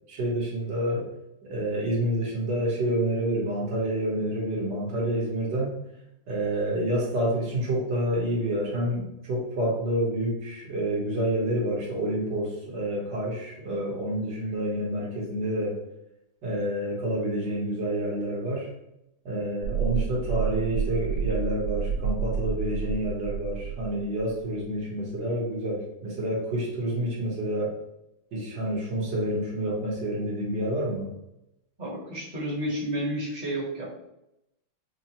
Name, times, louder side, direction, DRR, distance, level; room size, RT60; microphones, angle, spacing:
voice 1, 0.1-1.1 1.4-5.7 6.3-15.8 16.4-18.7 19.2-27.7 28.3-31.1, right 1 dB, 60° right, -3 dB, 1.6 m, -28 dB
sound 1, 19.6-24.5 24.8-24.9, right 7 dB, 75° right, 1.2 m, -30 dB
voice 2, 31.8-33.8, right 1 dB, 30° right, -6 dB, 1.0 m, -31 dB
5.5 x 2.2 x 2.8 m, 0.85 s
omnidirectional pair, 2.2 m